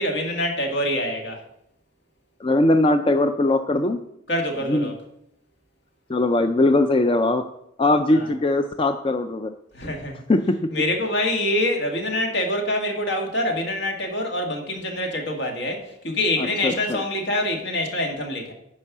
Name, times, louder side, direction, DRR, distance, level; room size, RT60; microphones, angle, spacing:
voice 1, 0.0-1.4 4.3-4.9 8.1-8.3 9.7-10.2 10.7-18.5, left 1 dB, 70° left, 2 dB, 1.9 m, -25 dB
voice 2, 2.4-4.0 4.7-4.9 6.1-7.4 7.8-9.5 10.3-10.6 16.4-17.0, left 2 dB, 25° left, 8 dB, 0.4 m, -20 dB
9.8 x 5.4 x 6.0 m, 0.80 s
head